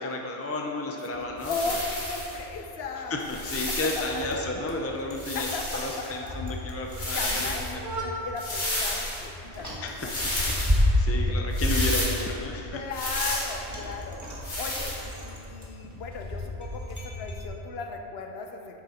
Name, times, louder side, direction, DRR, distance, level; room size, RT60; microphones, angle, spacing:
voice 1, 0.0-1.6 3.1-7.9 9.8-12.8, left 2 dB, 20° left, 1 dB, 0.4 m, -33 dB
voice 2, 1.1-3.2 3.7-4.5 5.3-6.4 7.0-7.7 8.0-10.7 12.7-14.2 14.6-18.8, left 4 dB, 65° left, 3 dB, 1.0 m, -37 dB
Bicycle, 1.1-17.4, left 1 dB, 15° right, 1.3 m, -32 dB
sound 1, 1.4-2.4 3.2-4.2 5.1-6.1 6.9-7.7 8.4-9.2 10.0-10.8 11.5-12.2 12.9-13.6 14.4-15.0, left 1 dB, 45° left, 2.0 m, -31 dB
10.5 x 6.7 x 4.3 m, 2.9 s
omnidirectional pair, 1.1 m